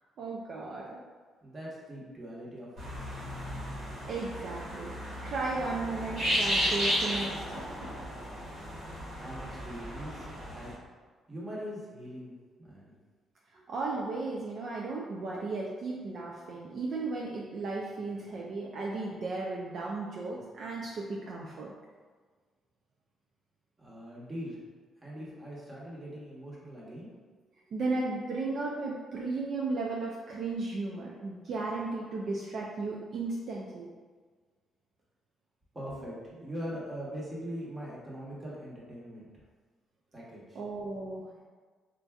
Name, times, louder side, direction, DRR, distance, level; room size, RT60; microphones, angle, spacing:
voice 1, 0.2-1.0 4.1-4.9 5.2-7.6 13.7-21.7 27.7-33.9 40.5-41.3, right 3 dB, 60° right, -3 dB, 0.4 m, -35 dB
voice 2, 1.4-3.1 9.2-10.7 11.3-12.9 13.5-13.7 23.8-24.6 25.0-27.1 35.7-39.3 40.1-40.6, equal, 30° right, -6 dB, 1.2 m, -42 dB
sound 1, 2.8-10.7, equal, 85° right, 1.4 m, -34 dB
4.4 x 2.5 x 2.3 m, 1.5 s
cardioid pair, 90°, 0 cm